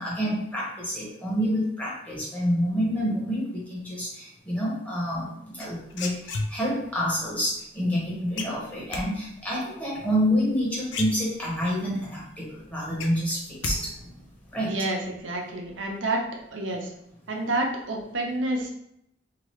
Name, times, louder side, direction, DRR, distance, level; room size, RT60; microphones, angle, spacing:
voice 1, 0.0-14.2 14.5-14.8, equal, 10° left, -6 dB, 0.9 m, -28 dB
sound 1, 5.6-6.9 8.4-9.0 10.5-10.6 10.9-11.7 12.1-12.2 12.5-13.8 14.0-14.5, left 3 dB, 80° left, 0.4 m, -32 dB
voice 2, 14.7-16.2 16.5-16.9 17.3-18.7, right 2 dB, 85° right, 0 dB, 0.6 m, -29 dB
2.9 x 2.3 x 3.0 m, 0.78 s
head